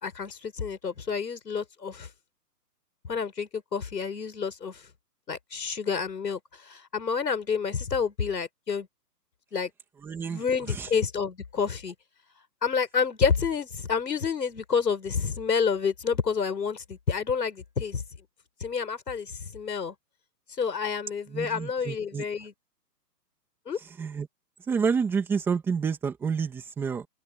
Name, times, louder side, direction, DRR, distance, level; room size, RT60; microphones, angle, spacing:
voice 1, 0.0-2.1 3.1-4.9 5.3-8.9 9.5-9.7 10.2-11.9 12.6-18.0 18.6-19.9 20.6-22.5 23.7-23.8, left 6 dB, 90° left, 5.5 m, -29 dB
voice 2, 10.0-10.9 21.3-22.2 24.0-24.3 24.7-27.1, right 6 dB, 5° right, 2.5 m, -29 dB
open air
hypercardioid pair, 175°, 48 cm